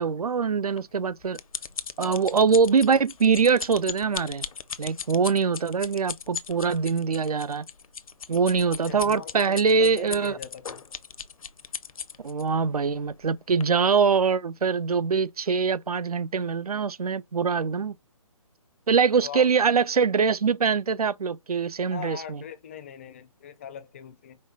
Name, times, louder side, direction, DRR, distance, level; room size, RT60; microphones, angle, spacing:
voice 1, 0.0-1.4 2.0-4.4 4.8-7.7 8.3-10.4 12.2-18.0 18.9-22.4, right 5 dB, 85° right, 0.5 m, -23 dB
sound 1, 0.8-12.4 13.1-13.3 13.6-13.7, left 6 dB, 70° left, 0.7 m, -37 dB
voice 2, 8.8-10.8 19.2-19.5 21.9-24.4, left 8 dB, 20° left, 0.4 m, -40 dB
5.3 x 2.3 x 3.8 m
figure-of-eight pair, 150°, 19 cm